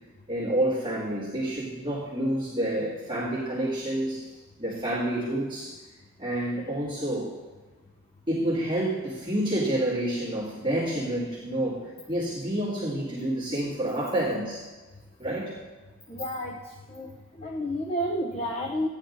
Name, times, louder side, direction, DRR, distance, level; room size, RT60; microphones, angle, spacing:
voice 1, 0.3-5.8 6.2-7.3 8.3-14.6 15.2-15.5, right 1 dB, 20° right, -9 dB, 2.2 m, -29 dB
voice 2, 16.1-16.6 16.9-17.1 17.4-18.9, equal, 25° left, 0 dB, 0.6 m, -30 dB
16.0 x 9.9 x 2.6 m, 1.3 s
head